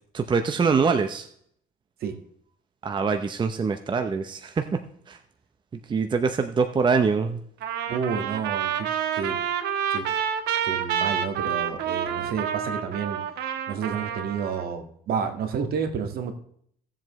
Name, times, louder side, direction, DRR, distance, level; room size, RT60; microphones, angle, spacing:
voice 1, 0.1-1.3 2.8-4.8 5.1-5.2 5.9-7.4, right 5 dB, 25° right, 7 dB, 0.7 m, -24 dB
Trumpet, 7.6-14.6, right 9 dB, 80° right, 1.3 m, -28 dB
voice 2, 7.9-9.4 9.9-10.1 10.6-13.2 13.7-16.3, right 6 dB, 65° right, 5 dB, 1.8 m, -30 dB
16.5 x 7.7 x 3.2 m, 0.65 s
cardioid pair, 110°, 17 cm